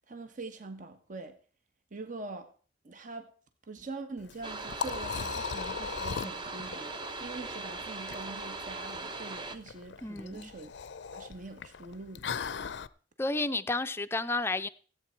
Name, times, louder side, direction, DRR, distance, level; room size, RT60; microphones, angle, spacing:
voice 1, 0.1-1.4 1.9-2.5 2.8-3.3 3.7-10.7 11.1-12.4, right 3 dB, 45° right, 1.2 m, -44 dB
Liquid, 4.2-12.9, left 6 dB, 70° left, 0.5 m, -39 dB
sound 1, 4.4-9.6, right 3 dB, 25° right, 0.9 m, -39 dB
voice 2, 10.0-10.5 13.2-14.7, left 2 dB, 15° left, 0.5 m, -31 dB
17.0 x 8.4 x 4.5 m
head